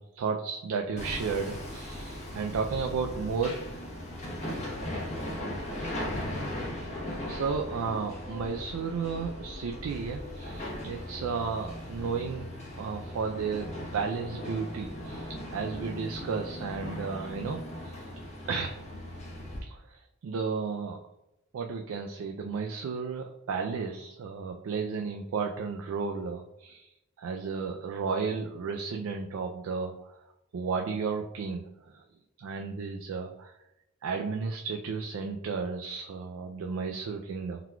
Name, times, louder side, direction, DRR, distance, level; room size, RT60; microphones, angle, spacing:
voice 1, 0.0-3.6 7.3-12.5 12.7-18.1 18.5-18.8 19.7-21.0 21.5-26.9 27.2-30.2 30.5-32.0 32.4-33.5 34.0-37.6, right 5 dB, 70° right, 3 dB, 0.3 m, -33 dB
Hammer, 1.0-19.6, left 1 dB, 30° left, 0.9 m, -38 dB
4.4 x 3.9 x 2.2 m, 0.91 s
head